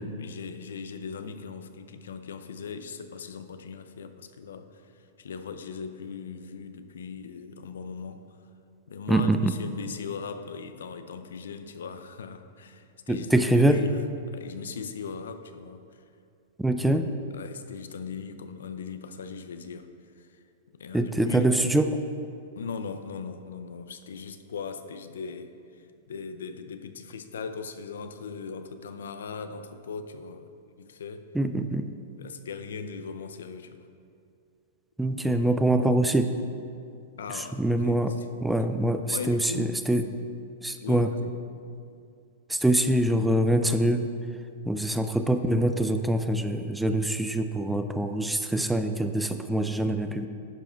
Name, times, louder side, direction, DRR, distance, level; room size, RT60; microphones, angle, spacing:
voice 1, 0.1-8.2 8.9-14.0 14.3-16.0 17.3-19.9 20.2-20.4 20.7-21.5 22.6-30.5 30.8-31.3 32.2-33.9 37.2-38.3 38.5-38.7 39.1-39.8 40.8-41.4, left 5 dB, 85° left, 9 dB, 0.5 m, -39 dB
voice 2, 9.1-9.5 13.1-13.8 16.6-17.1 20.9-22.0 31.3-31.9 35.0-36.3 37.3-38.1 38.4-40.1 40.6-41.1 42.5-44.1 44.7-50.3, right 1 dB, 5° right, 8 dB, 0.4 m, -24 dB
11.0 x 4.9 x 4.4 m, 2.4 s
hypercardioid pair, 125°, 0 cm